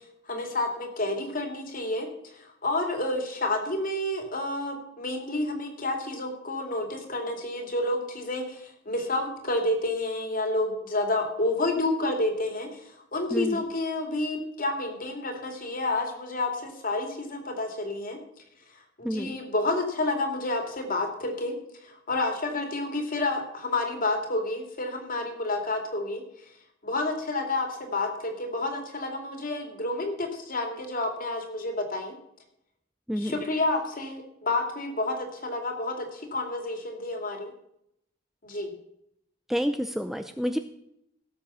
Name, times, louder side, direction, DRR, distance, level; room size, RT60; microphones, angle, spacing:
voice 1, 0.3-2.1 2.6-12.8 13.1-18.2 19.0-21.5 21.8-26.2 26.8-32.1 33.2-37.5 38.4-38.7, left 2 dB, 45° left, 4 dB, 2.6 m, -29 dB
voice 2, 13.3-13.6 19.0-19.4 33.1-33.4 39.5-40.6, equal, ahead, 8 dB, 0.5 m, -29 dB
17.5 x 7.4 x 5.7 m, 0.76 s
head